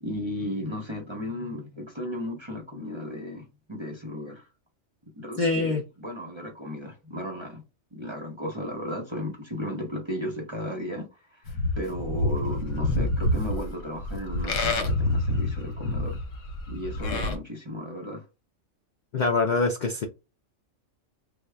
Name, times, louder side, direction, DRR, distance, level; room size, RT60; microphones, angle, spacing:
voice 1, 0.0-4.5 5.2-7.6 7.9-16.2 16.7-18.2, equal, 30° right, 0.5 m, -35 dB
voice 2, 5.4-5.8 19.1-20.1, left 3 dB, 65° left, 0.4 m, -24 dB
Livestock farm animals working animals, 11.5-17.4, left 2 dB, 80° left, 1.1 m, -27 dB
3.5 x 2.1 x 3.2 m
omnidirectional pair, 1.3 m